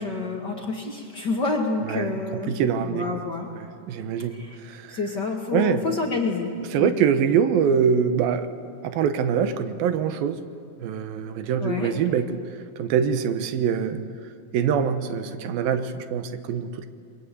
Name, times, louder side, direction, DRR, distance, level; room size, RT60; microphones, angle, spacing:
voice 1, 0.0-2.5 2.8-3.5 4.3-4.6 4.9-6.5 6.8-6.9 11.6-11.9, left 3 dB, 40° left, 1 dB, 1.7 m, -28 dB
voice 2, 1.9-3.2 3.6-5.0 5.5-5.8 6.7-8.5 8.8-10.4 10.8-14.1 14.5-16.9, right 7 dB, 85° right, 10 dB, 2.9 m, -24 dB
28.0 x 22.0 x 8.4 m, 2.4 s
omnidirectional pair, 4.1 m